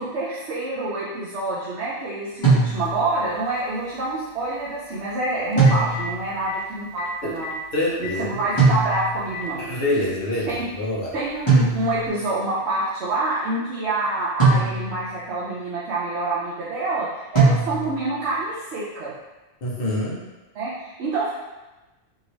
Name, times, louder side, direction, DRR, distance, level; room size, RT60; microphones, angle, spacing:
voice 1, 0.0-7.5 8.0-9.6 10.5-10.6 11.1-19.1 20.5-21.3, right 2 dB, 70° right, -8 dB, 0.8 m, -27 dB
sound 1, 2.4-3.2 5.6-6.3 8.6-9.3 11.5-12.2 14.4-15.2 17.3-18.1, right 3 dB, 25° left, 1.0 m, -20 dB
Telephone, 2.9-3.0 5.1-5.2 5.5-6.0 6.5-6.6 7.0-7.1 7.4-7.5 8.0-8.1 8.5-8.6 8.9-9.5 10.5-10.6 12.0-12.1, left 8 dB, 80° left, 0.9 m, -33 dB
voice 2, 7.7-8.7 9.6-11.1 19.6-20.2, left 1 dB, 55° left, -5 dB, 0.9 m, -26 dB
2.8 x 2.7 x 3.0 m, 1.1 s
omnidirectional pair, 1.2 m